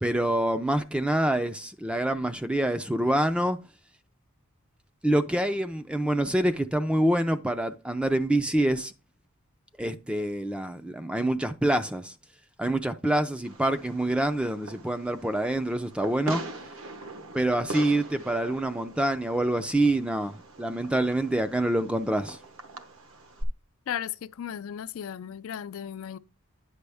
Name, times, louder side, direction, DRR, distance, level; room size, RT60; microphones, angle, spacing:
voice 1, 0.0-3.6 5.0-8.9 9.8-12.1 12.6-16.4 17.3-22.4, right 1 dB, 5° right, 0.4 m, -26 dB
Fireworks, 13.4-23.4, right 2 dB, 65° right, 1.0 m, -42 dB
voice 2, 23.9-26.2, left 9 dB, 70° left, 0.3 m, -35 dB
9.6 x 6.0 x 3.4 m
head